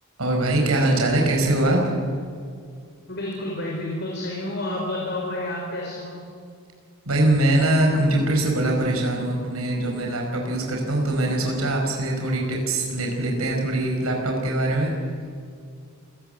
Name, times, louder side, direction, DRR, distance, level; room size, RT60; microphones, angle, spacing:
voice 1, 0.2-2.0 7.1-14.9, right 1 dB, 90° right, 1 dB, 5.2 m, -22 dB
voice 2, 3.1-6.2, left 1 dB, 50° left, -2 dB, 4.9 m, -30 dB
28.0 x 17.0 x 8.0 m, 2.1 s
head